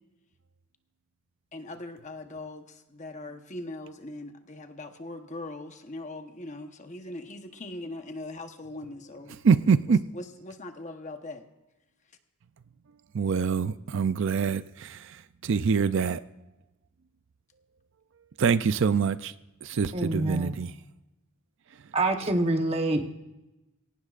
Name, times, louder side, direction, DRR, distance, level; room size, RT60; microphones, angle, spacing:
voice 1, 1.5-9.4 10.1-11.4, left 2 dB, 35° left, 6 dB, 1.0 m, -40 dB
voice 2, 9.4-10.0 13.1-16.2 18.4-19.3 19.6-20.7, right 6 dB, 55° right, 13 dB, 0.4 m, -25 dB
voice 3, 19.9-20.5 21.9-23.0, right 2 dB, 25° right, 5 dB, 1.1 m, -26 dB
22.0 x 18.0 x 2.5 m, 1.0 s
head